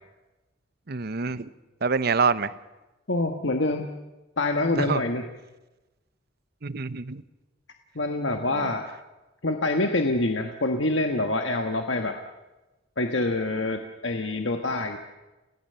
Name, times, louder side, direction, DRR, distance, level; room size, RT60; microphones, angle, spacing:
voice 1, 0.9-1.5 1.8-2.5 4.8-5.0 6.6-7.2 8.5-8.7, right 5 dB, 55° right, 15 dB, 0.8 m, -26 dB
voice 2, 3.1-3.9 4.4-5.2 7.9-8.9 9.4-12.1 13.0-15.0, left 2 dB, 65° left, 5 dB, 1.5 m, -26 dB
30.0 x 17.5 x 6.9 m, 1.1 s
head